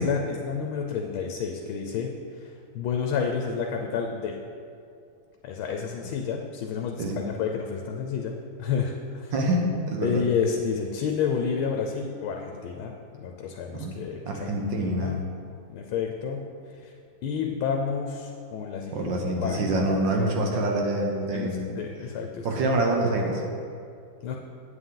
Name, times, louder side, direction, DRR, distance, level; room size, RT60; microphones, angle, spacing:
voice 1, 0.0-4.4 5.4-9.3 10.0-15.2 15.7-16.5 16.8-16.9 17.2-19.1 19.4-19.9 21.3-22.5 24.2-24.4, left 6 dB, 85° left, 2 dB, 1.5 m, -30 dB
voice 2, 9.9-10.2 13.7-13.9 14.2-15.1 18.9-21.7 22.4-23.4, right 1 dB, 65° right, 1 dB, 1.7 m, -26 dB
8.6 x 8.0 x 3.8 m, 2.4 s
omnidirectional pair, 2.2 m